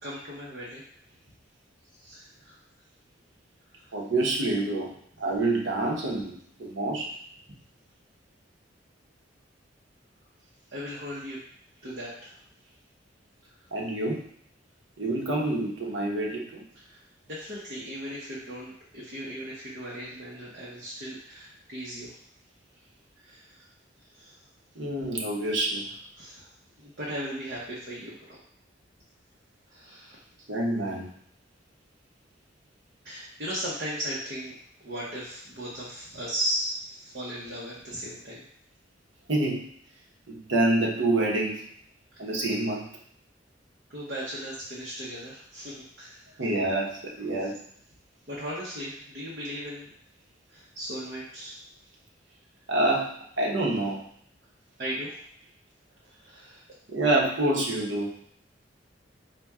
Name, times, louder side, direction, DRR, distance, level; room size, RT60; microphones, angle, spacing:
voice 1, 0.0-0.8 1.9-2.6 10.7-11.4 11.8-12.4 16.7-22.2 23.2-23.7 24.1-24.4 26.2-26.5 26.8-28.4 29.7-30.2 33.0-34.5 34.8-38.5 42.1-42.4 43.9-46.4 48.3-49.9 50.5-51.6 54.8-55.1 56.0-56.6, equal, 55° right, -7 dB, 0.9 m, -37 dB
voice 2, 3.9-4.9 5.2-7.1 13.7-14.2 15.0-16.6 24.8-25.9 30.5-31.1 39.3-39.6 40.3-41.7 42.2-42.9 46.4-47.6 52.7-53.1 53.4-54.0 56.9-58.1, right 2 dB, 85° right, -1 dB, 0.9 m, -27 dB
4.2 x 2.2 x 3.5 m, 0.62 s
head